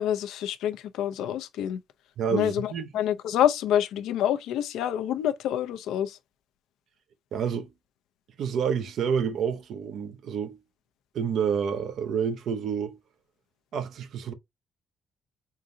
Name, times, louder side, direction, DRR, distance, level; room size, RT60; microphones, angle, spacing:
voice 1, 0.0-1.8 2.3-6.2, left 10 dB, 85° left, 0.6 m, -27 dB
voice 2, 2.2-2.9 7.3-7.7 8.4-10.6 11.1-13.0 13.7-14.3, right 7 dB, 70° right, 0.8 m, -28 dB
3.8 x 3.8 x 2.7 m
cardioid pair, 90°, 0 cm